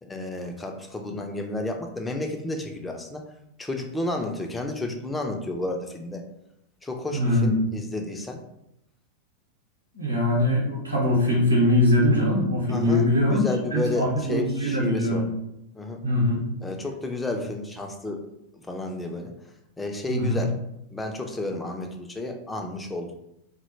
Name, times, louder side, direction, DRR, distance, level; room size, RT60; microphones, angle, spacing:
voice 1, 0.0-3.2 3.6-6.2 6.8-8.4 12.7-15.3 15.7-16.0 16.6-18.2 18.7-19.3 19.8-20.6 20.9-23.2, left 2 dB, 10° left, 3 dB, 0.4 m, -31 dB
voice 2, 7.1-7.6 9.9-13.4 13.7-15.2 16.0-16.5 20.1-20.4, left 1 dB, 85° right, -4 dB, 0.8 m, -22 dB
2.1 x 2.1 x 3.1 m, 0.80 s
figure-of-eight pair, 90°, 0 cm